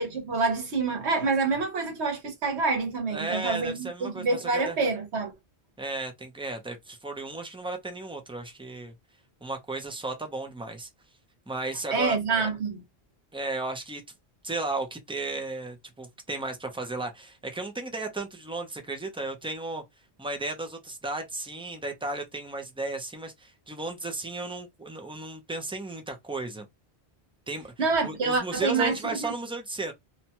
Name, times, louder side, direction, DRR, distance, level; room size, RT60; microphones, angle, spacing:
voice 1, 0.0-5.3 11.9-12.8 27.8-29.3, right 4 dB, 85° right, 1.2 m, -27 dB
voice 2, 3.1-4.8 5.8-8.9 9.4-10.9 11.5-12.5 13.3-14.0 14.4-19.8 20.2-26.7 27.5-27.7 28.0-29.9, right 2 dB, 10° right, 0.4 m, -34 dB
2.8 x 2.2 x 2.8 m
omnidirectional pair, 1.1 m